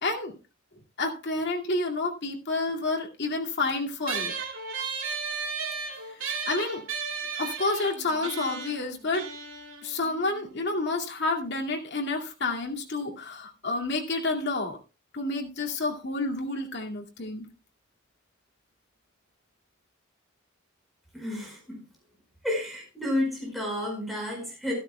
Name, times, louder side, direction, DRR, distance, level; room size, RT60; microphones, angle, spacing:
voice 1, 0.0-0.3 1.0-4.3 6.1-6.9 7.3-9.3 9.8-14.8 15.1-17.5, left 2 dB, 60° left, 1 dB, 2.3 m, -29 dB
sound 1, 4.1-10.9, right 5 dB, 80° right, 2.4 m, -35 dB
voice 2, 21.1-21.8 22.4-24.7, left 1 dB, ahead, -2 dB, 4.9 m, -31 dB
14.0 x 12.5 x 2.2 m, 0.31 s
head